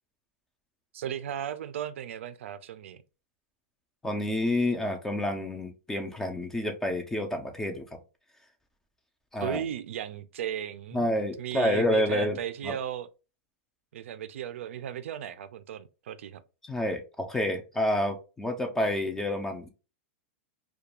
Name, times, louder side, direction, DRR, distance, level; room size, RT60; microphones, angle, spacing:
voice 1, 0.9-3.0 9.4-11.1 11.4-13.1 13.9-16.4, right 10 dB, 80° right, 0.3 m, -36 dB
voice 2, 4.0-7.8 9.3-9.6 10.9-12.4 12.6-12.7 16.7-19.7, left 1 dB, 5° left, 0.3 m, -28 dB
2.4 x 2.2 x 2.8 m
supercardioid pair, 155°, 7 cm